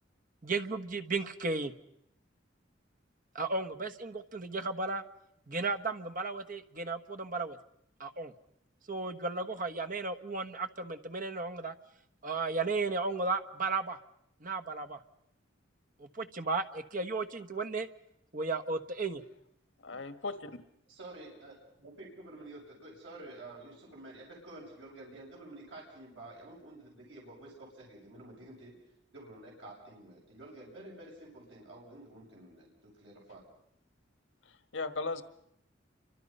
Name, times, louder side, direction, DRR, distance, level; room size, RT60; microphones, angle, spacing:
voice 1, 0.4-1.7 3.3-5.0 5.5-7.6 8.0-8.3 8.9-11.7 12.2-14.0 14.4-15.0 16.0-17.9 18.3-19.2, right 3 dB, 45° right, 7 dB, 1.3 m, -34 dB
voice 2, 19.8-20.6 34.4-35.2, left 3 dB, 85° left, 11 dB, 1.4 m, -37 dB
voice 3, 20.9-28.7 29.1-33.4, right 2 dB, 70° right, -3 dB, 7.3 m, -50 dB
29.0 x 25.0 x 5.5 m, 0.76 s
head